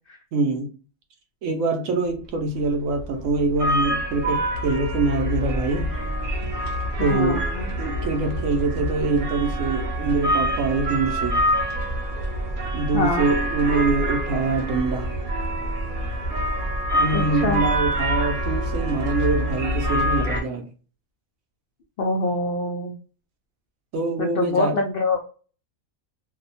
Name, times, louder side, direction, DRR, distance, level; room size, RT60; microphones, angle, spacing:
voice 1, 0.3-0.7 1.4-5.9 7.0-7.4 7.8-11.4 12.7-15.2 16.9-20.7 23.9-24.8, right 3 dB, 70° right, 1.0 m, -24 dB
sound 1, 2.6-20.4, equal, 45° right, 0.7 m, -26 dB
voice 2, 7.0-7.7 12.9-13.3 17.1-17.6 22.0-22.9 24.2-25.2, left 3 dB, 85° left, 0.4 m, -24 dB
2.8 x 2.1 x 2.6 m
omnidirectional pair, 1.5 m